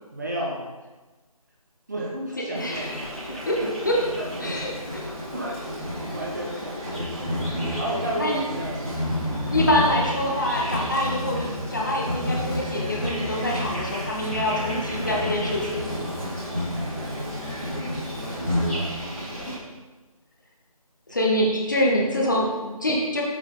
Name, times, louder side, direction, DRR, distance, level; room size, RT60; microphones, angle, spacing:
voice 1, 0.1-0.6 1.9-2.9 3.3-3.7 4.2-4.6 5.0-5.6 5.8-7.4 7.7-9.0 15.9-19.6 21.1-21.2, right 1 dB, 30° right, -3 dB, 1.1 m, -34 dB
voice 2, 2.4-2.9 3.5-3.6 3.8-4.0 4.4-5.0 8.2-8.4 9.5-15.6 19.5-19.6 21.1-23.2, left 1 dB, 30° left, -2 dB, 0.9 m, -25 dB
Insect, 2.5-19.5, equal, ahead, 0.8 m, -30 dB
7.3 x 4.3 x 3.9 m, 1.2 s
figure-of-eight pair, 160°, 19 cm